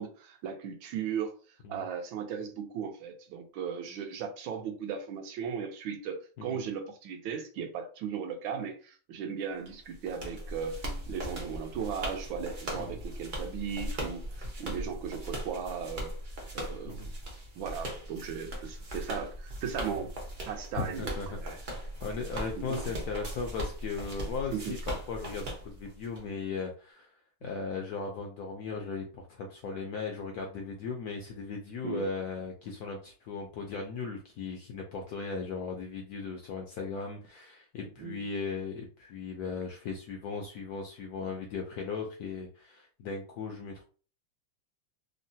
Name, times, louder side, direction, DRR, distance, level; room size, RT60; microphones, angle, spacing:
voice 1, 0.0-1.3 1.7-10.8 11.1-16.1 16.5-17.0 17.6-20.1 20.5-21.6 22.6-22.8 24.5-24.7 31.8-32.1 38.0-38.2, right 7 dB, 85° right, 1.4 m, -37 dB
sound 1, 9.7-26.2, right 1 dB, 55° right, 0.5 m, -39 dB
voice 2, 20.7-27.1 27.4-43.8, left 4 dB, 75° left, 0.8 m, -37 dB
3.6 x 2.1 x 2.6 m
omnidirectional pair, 2.1 m